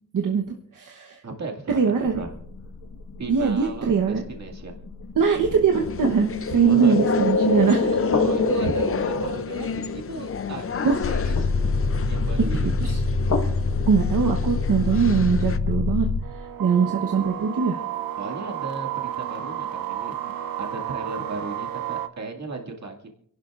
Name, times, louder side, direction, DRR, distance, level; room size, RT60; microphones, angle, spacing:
voice 1, 0.7-1.2 1.7-2.2 3.3-4.2 5.2-8.0 10.8-11.0 12.4-13.0 13.9-16.1 16.6-17.8, right 6 dB, 65° right, 2 dB, 1.1 m, -22 dB
voice 2, 1.2-1.8 2.1-2.3 3.2-4.7 6.7-7.0 8.1-11.5 12.0-12.7 18.2-20.3 20.6-23.1, right 3 dB, 50° right, 2 dB, 2.1 m, -36 dB
sound 1, 2.1-9.4 10.9-16.2, left 3 dB, 60° left, 1.5 m, -25 dB
sound 2, 5.7-15.6, left 6 dB, 40° left, 0.5 m, -34 dB
sound 3, 16.2-22.1, right 11 dB, 85° right, 0.6 m, -32 dB
28.5 x 11.5 x 2.5 m, 0.64 s
wide cardioid pair, 125°, 34 cm